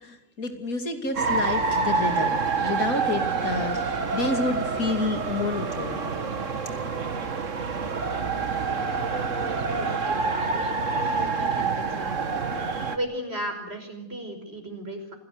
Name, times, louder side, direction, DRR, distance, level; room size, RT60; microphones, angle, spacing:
voice 1, 0.0-6.5, left 3 dB, 85° left, 6 dB, 3.3 m, -30 dB
sound 1, 1.2-13.0, right 4 dB, 60° right, 2.0 m, -27 dB
voice 2, 8.2-8.7 9.7-12.2 12.9-15.1, right 1 dB, 45° right, 5 dB, 5.7 m, -36 dB
27.5 x 17.0 x 8.0 m, 0.80 s
omnidirectional pair, 1.4 m